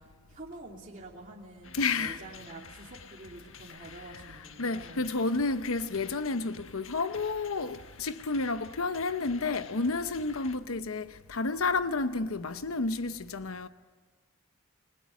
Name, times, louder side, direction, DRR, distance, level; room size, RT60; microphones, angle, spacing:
voice 1, 0.0-5.1, right 2 dB, 40° right, 2.9 m, -47 dB
sound 1, 1.6-10.6, left 5 dB, 65° left, 1.4 m, -51 dB
voice 2, 1.7-2.2 4.1-13.7, left 3 dB, 90° left, 0.8 m, -31 dB
29.0 x 21.5 x 8.4 m
head